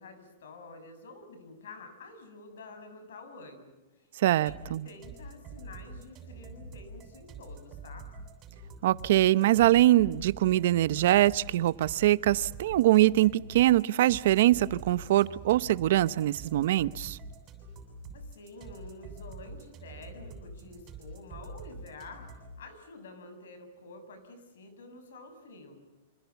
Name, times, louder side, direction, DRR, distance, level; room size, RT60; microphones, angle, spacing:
voice 1, 0.0-3.8 4.2-8.1 18.1-25.8, left 3 dB, 85° left, 9 dB, 6.9 m, -49 dB
voice 2, 4.2-4.9 8.8-17.2, right 14 dB, 55° right, 18 dB, 0.8 m, -23 dB
sound 1, 4.5-22.6, right 3 dB, 20° right, 7.3 m, -46 dB
27.5 x 26.5 x 7.1 m, 1.1 s
supercardioid pair, 175°, 0 cm